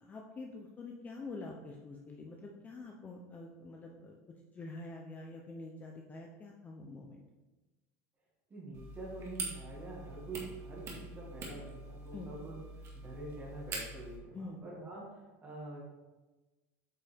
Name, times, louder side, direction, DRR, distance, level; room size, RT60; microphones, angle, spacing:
voice 1, 0.0-4.2 4.5-7.2 12.1-12.3 14.3-14.6, left 3 dB, 20° left, 0 dB, 0.7 m, -46 dB
voice 2, 8.5-12.6 12.9-15.8, right 2 dB, 20° right, -4 dB, 2.0 m, -46 dB
sound 1, 8.7-14.2, right 3 dB, 35° right, 1.8 m, -44 dB
8.3 x 5.4 x 3.5 m, 1.2 s
supercardioid pair, 145°, 8 cm